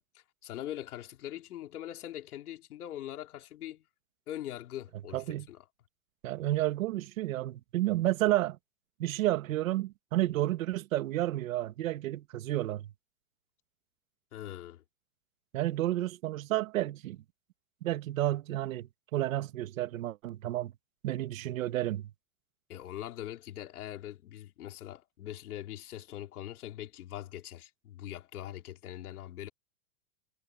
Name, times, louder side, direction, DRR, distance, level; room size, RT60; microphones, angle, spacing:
voice 1, 0.0-3.9 4.3-5.6 14.3-14.8 22.7-29.5, left 12 dB, 80° left, 4.3 m, -42 dB
voice 2, 5.1-5.5 6.2-8.6 9.0-12.9 15.5-17.2 17.8-20.7 21.0-22.1, right 15 dB, 60° right, 1.5 m, -31 dB
supercardioid pair, 170°, 44 cm